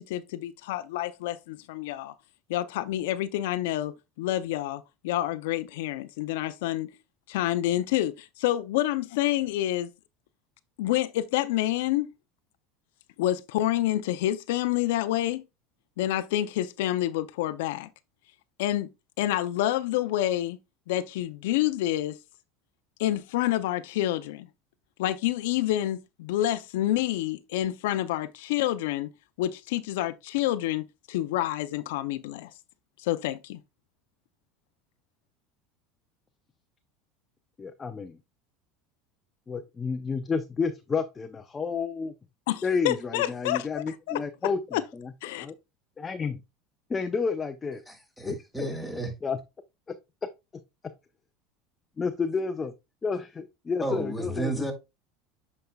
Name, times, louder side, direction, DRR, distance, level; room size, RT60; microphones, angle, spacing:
voice 1, 0.0-2.1 2.5-6.9 7.3-9.9 10.8-12.1 13.2-15.4 16.0-17.9 18.6-18.9 19.2-20.6 20.9-22.2 23.0-24.5 25.0-29.1 29.4-32.5 33.0-33.6 42.5-44.2 44.7-44.8 45.2-45.5, left 14 dB, 80° left, 0.5 m, -28 dB
voice 2, 37.6-38.2 39.5-42.1 42.6-44.6 44.9-45.1 45.4-45.5 46.0-46.4 46.9-47.8 48.3-48.7 49.2-49.4 49.9-50.0 52.0-52.7 53.0-54.5, left 5 dB, 20° left, 0.6 m, -30 dB
voice 3, 47.9-49.1 53.8-54.7, right 2 dB, ahead, 1.9 m, -32 dB
8.0 x 5.3 x 2.3 m
supercardioid pair, 120°, 0 cm